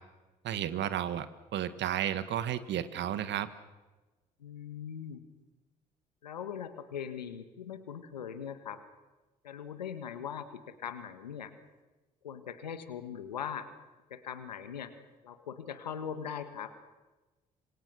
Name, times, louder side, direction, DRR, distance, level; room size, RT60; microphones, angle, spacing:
voice 1, 0.4-1.3 1.5-3.5, right 10 dB, 60° right, 12 dB, 1.9 m, -32 dB
voice 2, 4.4-5.2 6.2-8.8 9.4-11.5 12.2-13.7 14.1-14.9 15.2-16.7, left 8 dB, 90° left, 10 dB, 1.6 m, -40 dB
26.5 x 25.5 x 6.4 m, 1.2 s
hypercardioid pair, 50°, 21 cm